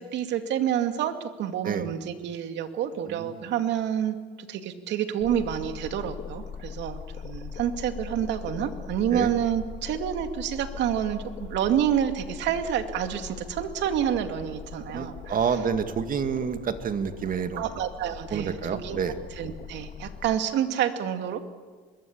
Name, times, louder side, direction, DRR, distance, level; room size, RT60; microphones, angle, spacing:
voice 1, 0.0-4.2 4.5-15.3 17.6-19.0 19.4-21.4, right 9 dB, 70° right, 7 dB, 2.4 m, -28 dB
voice 2, 3.1-3.5 9.1-9.3 14.9-17.6 18.3-19.2, right 7 dB, 45° right, 8 dB, 2.1 m, -28 dB
sound 1, 5.2-20.4, left 7 dB, 45° left, 1.8 m, -41 dB
25.0 x 22.0 x 8.7 m, 1.5 s
cardioid pair, 95°, 19 cm